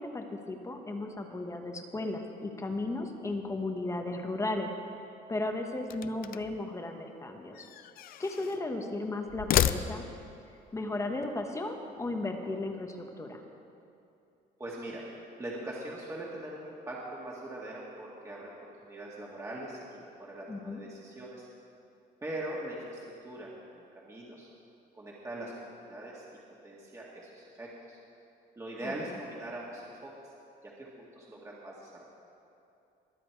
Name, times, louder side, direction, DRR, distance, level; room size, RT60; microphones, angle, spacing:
voice 1, 0.0-4.7 5.3-7.7 8.2-10.0 10.7-13.4 20.5-20.8 28.8-29.2, left 2 dB, 15° left, 4 dB, 1.2 m, -35 dB
sound 1, 5.8-6.6 7.5-8.6 9.3-10.3, left 12 dB, 60° left, 0.4 m, -31 dB
voice 2, 14.6-15.0 15.4-21.5 22.2-24.5 24.9-26.2 26.6-28.0 28.6-30.3 30.6-32.1, right 1 dB, 20° right, -5 dB, 1.9 m, -42 dB
22.5 x 7.6 x 4.6 m, 2.7 s
cardioid pair, 110°, 17 cm